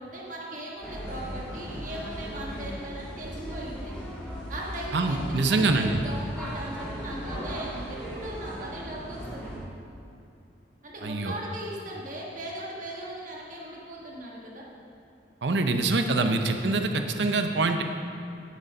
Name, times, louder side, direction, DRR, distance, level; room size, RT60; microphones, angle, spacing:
voice 1, 0.0-3.9 4.5-9.5 10.8-14.6, right 1 dB, 45° right, -3 dB, 1.5 m, -39 dB
sound 1, 0.8-9.6, equal, 5° left, 1.9 m, -37 dB
voice 2, 4.9-6.0 11.0-11.4 15.4-17.8, right 3 dB, 70° right, 6 dB, 0.7 m, -25 dB
9.5 x 6.6 x 5.3 m, 2.6 s
head